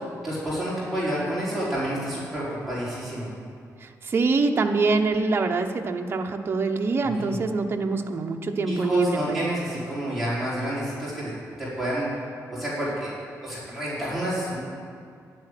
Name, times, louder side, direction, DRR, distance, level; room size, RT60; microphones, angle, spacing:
voice 1, 0.2-3.3 7.0-7.4 8.7-11.3 11.6-12.1 12.5-13.1 13.4-14.6, equal, ahead, -9 dB, 4.4 m, -29 dB
voice 2, 3.8-9.5, right 3 dB, 35° right, 3 dB, 1.0 m, -25 dB
11.0 x 10.0 x 9.9 m, 2.2 s
wide cardioid pair, 160°, 6 cm